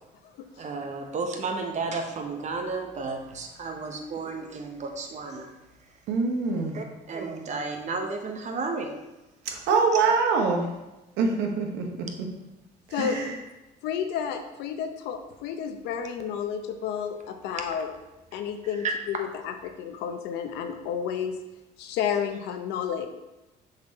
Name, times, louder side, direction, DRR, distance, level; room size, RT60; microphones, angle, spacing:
voice 1, 0.6-5.5 6.5-8.9 18.8-18.9, right 4 dB, 45° right, 4 dB, 1.0 m, -32 dB
voice 2, 6.1-6.8 9.4-10.7 11.2-12.3 12.9-13.4, right 4 dB, 85° right, 2 dB, 1.1 m, -25 dB
voice 3, 13.8-17.9 18.3-21.4 21.8-23.1, left 8 dB, 90° left, 7 dB, 0.7 m, -31 dB
6.8 x 4.2 x 4.0 m, 1.0 s
cardioid pair, 110°, 17 cm